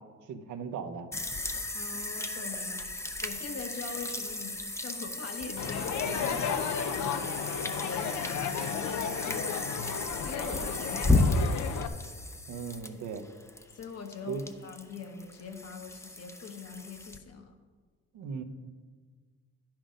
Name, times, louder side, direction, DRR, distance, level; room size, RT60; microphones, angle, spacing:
voice 1, 0.3-1.1 12.5-13.3 14.3-14.4 18.1-18.4, right 6 dB, 80° right, 8 dB, 0.9 m, -37 dB
sound 1, 1.1-17.2, left 2 dB, 10° left, 0.7 m, -33 dB
voice 2, 1.7-4.5 4.8-7.3 7.6-11.8 13.7-17.5, left 5 dB, 55° left, 4 dB, 1.3 m, -43 dB
Crowd, 5.6-11.9, left 7 dB, 75° left, 0.6 m, -33 dB
10.0 x 6.0 x 5.1 m, 1.5 s
cardioid pair, 90°, 30 cm